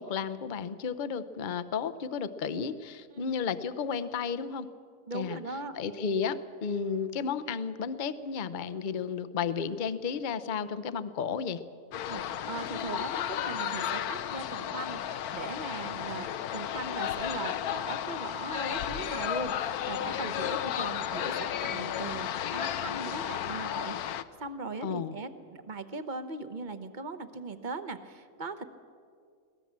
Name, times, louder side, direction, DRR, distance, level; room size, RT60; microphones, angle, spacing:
voice 1, 0.0-4.7 5.1-5.4 5.7-11.6 24.8-25.1, left 6 dB, 45° left, 12 dB, 0.7 m, -33 dB
voice 2, 5.1-5.8 12.0-15.0 15.3-16.3 16.5-28.7, right 3 dB, 35° right, 10 dB, 1.0 m, -39 dB
sound 1, 11.9-24.2, left 10 dB, 75° left, 1.2 m, -33 dB
22.0 x 17.5 x 7.5 m, 2.2 s
omnidirectional pair, 1.6 m